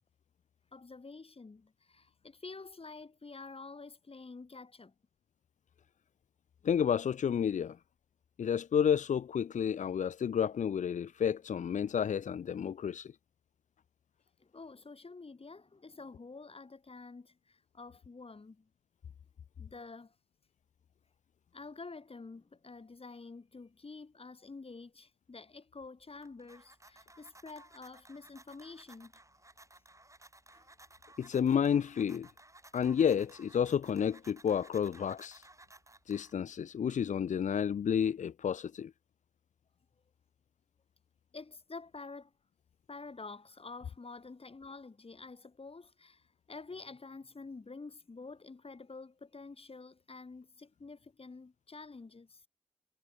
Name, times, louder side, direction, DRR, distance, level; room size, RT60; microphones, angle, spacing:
voice 1, 0.7-4.9 14.4-18.7 19.6-20.1 21.5-29.1 30.5-30.6 41.3-42.3 42.9-52.4, left 3 dB, 50° left, 7.4 m, -49 dB
voice 2, 6.6-7.8 8.4-13.1 31.2-32.3 32.7-35.5 36.1-38.9, left 8 dB, 80° left, 0.6 m, -30 dB
sound 1, 26.0-36.6, right 2 dB, 25° right, 7.8 m, -58 dB
cardioid pair, 50°, 12 cm